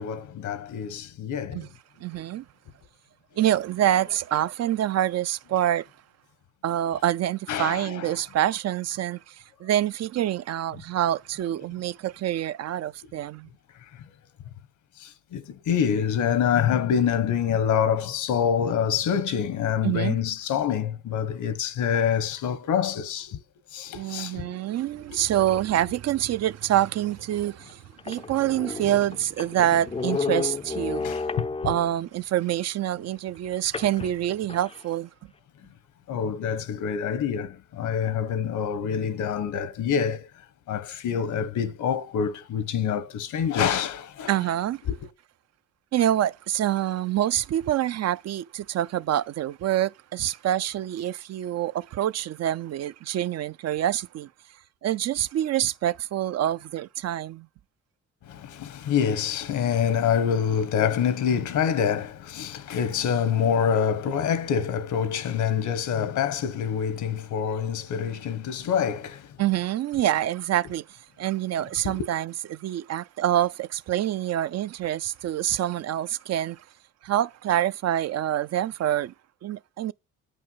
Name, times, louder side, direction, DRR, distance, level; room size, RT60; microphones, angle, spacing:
voice 1, 0.0-1.7 7.5-8.2 13.7-14.0 15.0-23.4 23.7-24.6 30.9-31.7 36.1-40.3 40.7-44.3 44.9-45.0 58.2-69.4 71.8-72.1, left 8 dB, 75° left, 1.2 m, -26 dB
voice 2, 2.0-2.4 3.4-5.9 6.6-9.4 9.6-13.5 19.8-20.2 23.9-27.8 28.1-31.0 31.6-35.1 44.3-44.8 45.9-54.3 54.8-57.5 69.4-70.8 71.2-76.6 77.0-79.1 79.4-79.9, right 12 dB, 60° right, 0.5 m, -26 dB
sound 1, 27.0-27.1 27.7-27.8 28.0-32.1 33.7-34.8, left 4 dB, 20° left, 0.4 m, -32 dB
8.6 x 5.5 x 5.5 m
cardioid pair, 90°, 30 cm